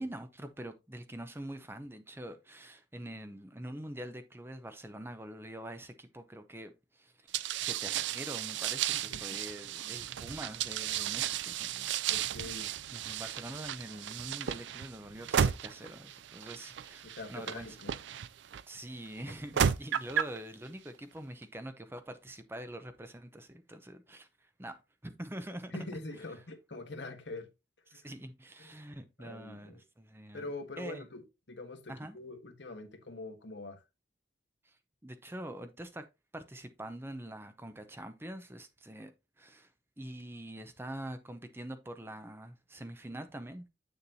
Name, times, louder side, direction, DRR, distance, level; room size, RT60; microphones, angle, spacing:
voice 1, 0.0-11.9 12.9-17.8 18.7-24.8 25.0-25.8 27.9-30.5 30.8-31.0 31.9-32.2 34.6-34.8 35.0-36.0 36.3-39.1 39.4-39.7 40.0-43.7, right 1 dB, 10° right, 0.6 m, -45 dB
sound 1, 7.3-18.6 19.3-20.4, right 9 dB, 75° right, 0.4 m, -34 dB
voice 2, 12.1-12.7 17.0-17.9 25.7-27.5 27.9-28.0 28.6-28.7 29.2-29.8 30.3-33.8, left 2 dB, 75° left, 1.4 m, -44 dB
7.8 x 6.8 x 2.7 m
head